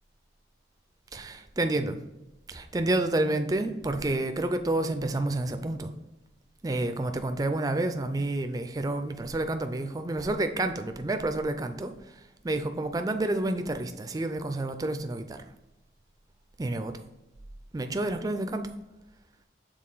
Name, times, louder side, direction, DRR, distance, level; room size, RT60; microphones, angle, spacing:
voice 1, 1.1-2.0 2.5-5.9 6.6-11.9 12.4-15.4 16.6-17.0 17.7-18.7, right 2 dB, 20° right, 8 dB, 0.3 m, -29 dB
6.5 x 3.8 x 3.9 m, 0.95 s
head